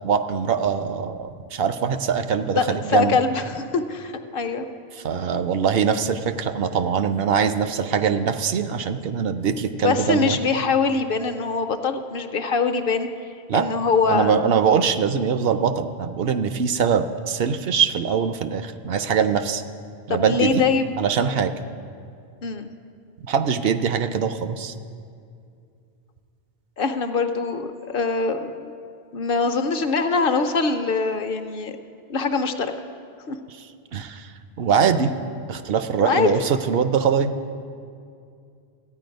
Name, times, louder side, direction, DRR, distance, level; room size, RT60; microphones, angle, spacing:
voice 1, 0.0-3.2 5.0-10.4 13.5-13.6 14.1-19.6 20.1-20.6 21.0-21.5 23.2-24.7 33.9-34.3 34.6-35.1 35.5-37.3, right 6 dB, 70° right, 10 dB, 0.8 m, -22 dB
voice 2, 2.5-4.6 9.8-13.1 13.5-14.6 20.1-20.9 22.4-22.7 26.8-28.7 29.1-31.8 32.1-32.7 33.3-33.4 36.0-36.3, left 4 dB, 65° left, 8 dB, 0.8 m, -23 dB
14.0 x 9.1 x 5.2 m, 2.4 s
omnidirectional pair, 1.0 m